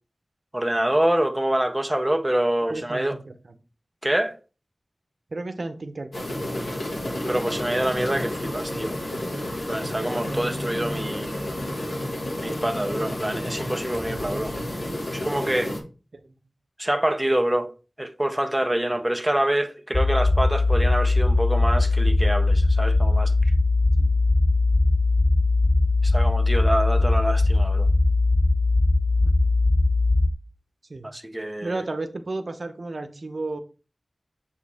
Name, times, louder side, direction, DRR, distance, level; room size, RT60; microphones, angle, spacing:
voice 1, 0.5-3.2 4.0-4.4 7.2-9.0 9.7-11.3 12.4-14.5 15.1-15.7 16.8-17.7 18.0-23.3 26.0-27.9 31.0-31.8, right 1 dB, 15° right, 0.7 m, -26 dB
voice 2, 2.7-3.5 5.3-6.3 10.3-10.5 16.1-16.2 24.0-24.1 29.2-29.3 30.9-31.1 31.6-33.6, right 2 dB, 70° right, 0.8 m, -33 dB
sound 1, 6.1-15.8, left 1 dB, 80° left, 1.7 m, -31 dB
sound 2, 19.9-30.3, left 2 dB, 35° left, 0.4 m, -20 dB
7.0 x 4.6 x 3.5 m
wide cardioid pair, 70°, 0 cm